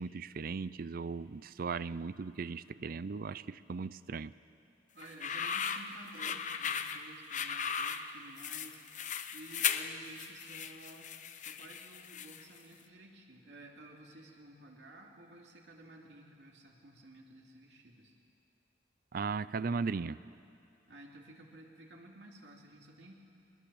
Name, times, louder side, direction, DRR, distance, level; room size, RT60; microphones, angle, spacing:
voice 1, 0.0-4.3 19.1-20.2, right 4 dB, 55° right, 17 dB, 0.5 m, -37 dB
voice 2, 4.9-8.8 9.3-18.1 20.9-23.2, right 1 dB, 80° right, -1 dB, 2.9 m, -54 dB
sound 1, 5.0-12.6, left 7 dB, 45° left, 0.8 m, -37 dB
22.5 x 20.5 x 7.0 m, 2.5 s
head